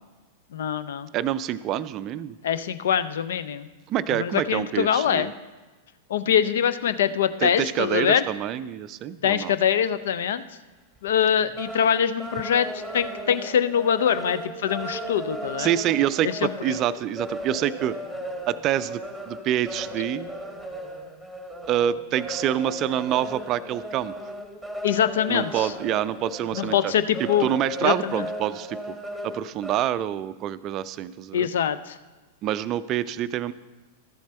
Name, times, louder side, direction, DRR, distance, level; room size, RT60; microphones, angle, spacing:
voice 1, 0.5-1.1 2.4-3.7 4.1-5.3 6.1-8.2 9.2-10.4 11.0-15.7 16.2-16.5 24.8-25.7 26.5-27.5 27.8-28.3 31.3-32.0, left 9 dB, 60° left, 14 dB, 0.5 m, -24 dB
voice 2, 1.1-2.4 3.9-5.3 7.4-9.5 15.6-18.0 18.5-20.3 21.7-24.1 25.3-26.9 27.2-28.8 29.2-31.5 32.4-33.5, right 11 dB, 35° right, 16 dB, 0.4 m, -26 dB
sound 1, 11.0-11.1 11.4-29.8, right 1 dB, 5° left, 1.3 m, -36 dB
13.0 x 7.3 x 4.4 m, 1.2 s
figure-of-eight pair, 95°, 0 cm